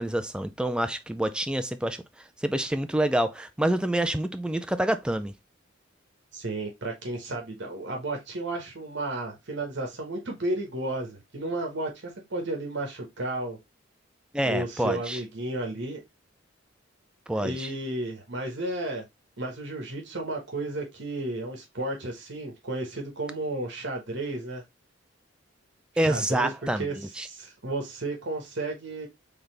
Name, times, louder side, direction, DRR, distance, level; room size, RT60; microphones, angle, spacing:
voice 1, 0.0-2.0 2.4-5.3 14.3-15.2 17.3-17.7 26.0-27.3, right 1 dB, 5° right, 0.4 m, -27 dB
voice 2, 6.3-13.6 14.4-16.0 17.3-19.0 19.4-24.6 25.9-26.5 26.8-27.0 27.2-29.1, right 2 dB, 65° right, 1.3 m, -33 dB
4.0 x 3.4 x 3.2 m
head